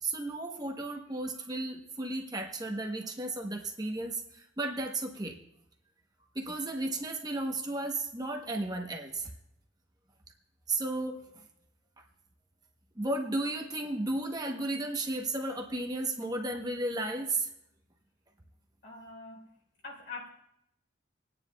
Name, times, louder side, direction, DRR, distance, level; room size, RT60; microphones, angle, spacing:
voice 1, 0.0-5.4 6.3-9.3 10.7-11.4 13.0-17.5, right 2 dB, 20° right, 2 dB, 0.8 m, -34 dB
voice 2, 18.8-19.5 19.8-20.3, left 3 dB, 70° left, -1 dB, 3.5 m, -43 dB
26.0 x 9.6 x 2.3 m, 0.79 s
head